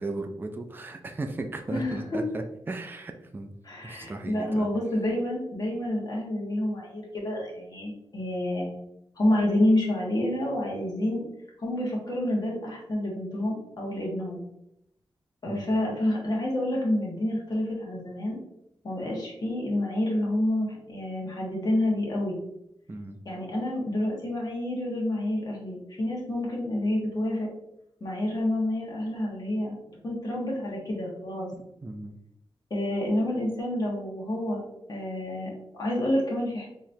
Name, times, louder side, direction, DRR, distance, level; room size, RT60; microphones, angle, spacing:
voice 1, 0.0-3.5 3.8-4.7 15.5-15.7 22.9-23.2 31.5-32.2, right 2 dB, 20° right, 5 dB, 0.4 m, -36 dB
voice 2, 1.7-2.2 3.6-8.7 9.2-11.2 11.6-14.4 15.4-18.4 18.8-22.4 23.2-27.5 28.0-29.8 30.0-31.5 32.7-34.6 34.9-36.7, left 1 dB, 45° left, -3 dB, 1.4 m, -28 dB
3.9 x 3.0 x 2.6 m, 0.80 s
wide cardioid pair, 110°, 9 cm